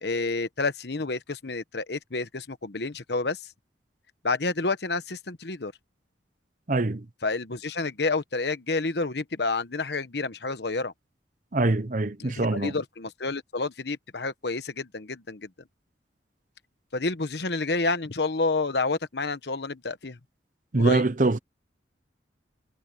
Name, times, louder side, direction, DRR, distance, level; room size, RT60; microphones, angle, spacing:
voice 1, 0.0-3.4 4.2-5.7 7.2-10.9 12.2-15.5 16.9-20.2 20.8-21.1, left 3 dB, 65° left, 1.1 m, -29 dB
voice 2, 6.7-7.0 11.5-12.7 20.7-21.4, right 2 dB, 45° right, 0.9 m, -24 dB
head